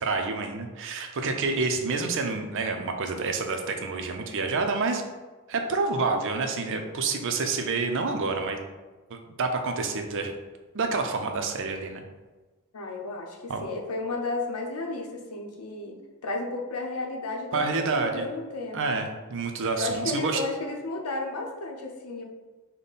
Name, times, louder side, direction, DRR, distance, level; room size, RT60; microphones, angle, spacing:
voice 1, 0.0-5.0 5.5-8.6 9.1-10.3 10.7-12.0 13.5-13.6 17.5-18.3 18.7-20.4, right 4 dB, 60° right, 5 dB, 0.5 m, -28 dB
voice 2, 12.7-16.0 16.2-19.0 19.8-22.2, left 3 dB, 75° left, 1 dB, 0.7 m, -33 dB
5.3 x 2.2 x 4.0 m, 1.2 s
head